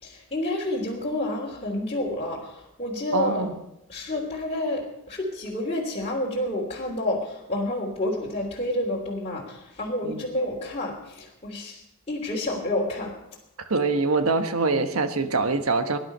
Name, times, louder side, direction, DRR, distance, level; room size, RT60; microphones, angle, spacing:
voice 1, 0.0-3.4 3.9-11.8 12.1-13.1, left 1 dB, 30° left, -5 dB, 3.0 m, -29 dB
voice 2, 3.1-3.5 10.0-10.2 13.7-16.0, right 3 dB, 80° right, 7 dB, 1.3 m, -24 dB
18.5 x 11.0 x 5.5 m, 0.87 s
head